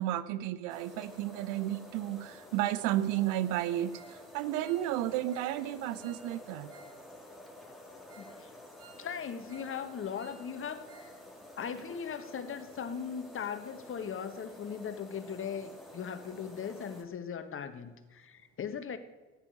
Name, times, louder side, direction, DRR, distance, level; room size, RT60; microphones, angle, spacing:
voice 1, 0.0-6.8, right 13 dB, 60° right, 14 dB, 0.8 m, -32 dB
sound 1, 0.7-17.0, left 1 dB, ahead, 3.3 m, -51 dB
Ringtone, 3.9-4.2 4.5-7.0 7.3-7.4 7.8-7.9 8.1-8.4 8.6-9.8 10.0-11.2 11.4-11.5 12.0-12.1, right 5 dB, 75° right, 3.9 m, -57 dB
voice 2, 8.2-8.5 8.9-11.1 11.6-19.0, left 7 dB, 40° left, 10 dB, 1.6 m, -39 dB
14.0 x 10.0 x 6.5 m, 1.3 s
figure-of-eight pair, 60°, 34 cm